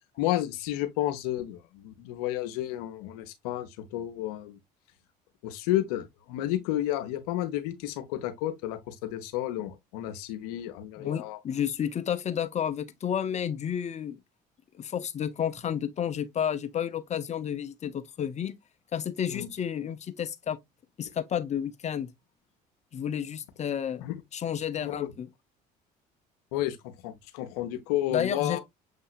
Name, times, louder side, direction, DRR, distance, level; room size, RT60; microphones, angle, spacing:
voice 1, 0.2-4.6 5.4-11.4 19.3-19.5 24.0-24.2 24.8-25.1 26.5-26.8 27.0-28.6, left 13 dB, 80° left, 0.8 m, -31 dB
voice 2, 11.0-14.2 14.8-18.5 18.9-20.6 21.0-22.1 22.9-24.0 24.3-25.3 28.1-28.6, left 9 dB, 35° left, 0.7 m, -31 dB
6.5 x 2.8 x 2.4 m
hypercardioid pair, 70°, 19 cm